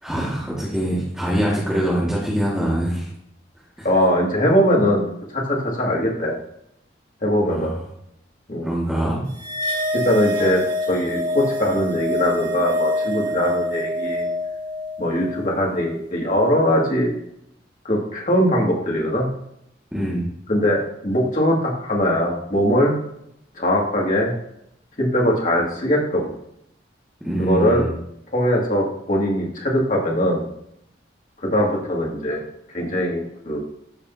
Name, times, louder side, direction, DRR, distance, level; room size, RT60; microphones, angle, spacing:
voice 1, 0.0-3.1 3.8-3.9 7.4-7.8 8.6-9.2 19.9-20.3 27.2-28.0, right 1 dB, 5° right, -8 dB, 1.9 m, -24 dB
voice 2, 3.8-5.0 5.3-6.3 7.2-7.7 8.5-8.7 9.9-10.6 10.9-14.3 15.0-17.1 17.8-19.3 20.5-22.9 23.6-24.3 25.0-26.3 27.5-27.9 28.3-30.5 31.4-32.4 32.7-33.6, equal, 40° left, -2 dB, 2.3 m, -21 dB
sound 1, 9.4-15.9, left 1 dB, 70° right, 2.6 m, -26 dB
13.5 x 5.2 x 2.8 m, 0.75 s
head